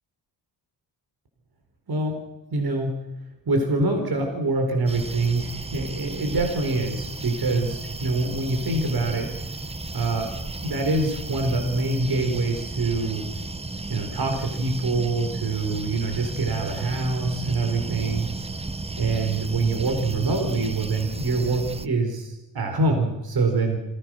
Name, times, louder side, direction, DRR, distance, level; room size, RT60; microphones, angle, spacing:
voice 1, 1.9-2.2 2.5-3.0 3.4-9.3 9.9-10.3 10.6-13.2 13.9-18.3 19.0-23.8, right 3 dB, 55° right, 3 dB, 4.4 m, -25 dB
sound 1, 4.9-21.9, right 2 dB, 15° right, 0.8 m, -34 dB
27.5 x 20.0 x 6.4 m, 1.1 s
wide cardioid pair, 105°, 44 cm